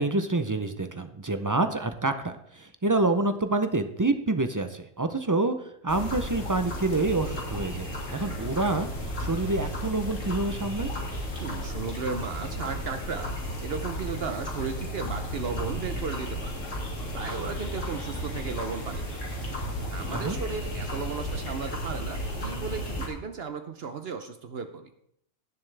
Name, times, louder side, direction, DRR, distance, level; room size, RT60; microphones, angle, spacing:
voice 1, 0.0-8.9 9.2-10.9 20.1-20.4, right 2 dB, 35° right, 8 dB, 0.3 m, -27 dB
sound 1, 5.9-23.1, equal, 90° left, 2.6 m, -34 dB
voice 2, 11.4-13.4 13.6-16.6 17.1-19.2 19.9-24.9, right 5 dB, 60° right, 8 dB, 0.9 m, -35 dB
16.5 x 7.3 x 3.4 m, 0.73 s
omnidirectional pair, 1.3 m